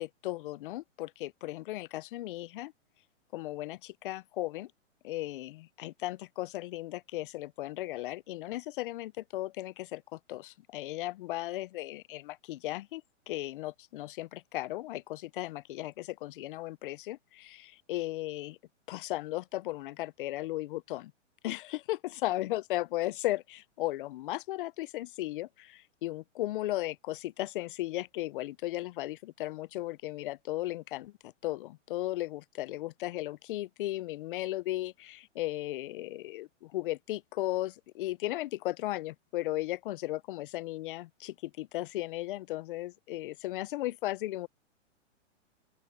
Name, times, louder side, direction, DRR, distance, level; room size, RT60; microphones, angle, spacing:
voice 1, 0.0-2.7 3.3-4.7 5.0-18.6 18.9-21.1 21.4-44.5, left 16 dB, 45° left, 0.7 m, -36 dB
open air
hypercardioid pair, 140°, 37 cm